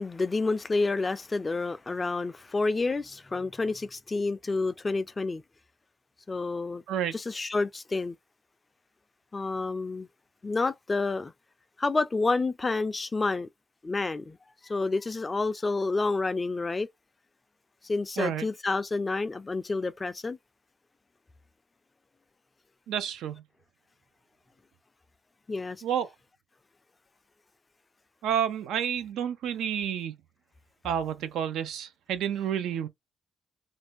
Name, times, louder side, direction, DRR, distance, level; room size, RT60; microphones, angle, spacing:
voice 1, 0.0-5.4 6.3-6.8 7.1-8.2 9.3-10.1 10.4-11.3 11.8-13.5 13.8-14.4 14.6-16.9 17.8-20.4 25.5-25.8, left 3 dB, 25° left, 0.4 m, -29 dB
voice 2, 18.2-18.5 22.9-23.4 25.8-26.1 28.2-30.1 30.8-32.9, right 9 dB, 80° right, 0.5 m, -30 dB
2.6 x 2.1 x 3.4 m
cardioid pair, 90°, 0 cm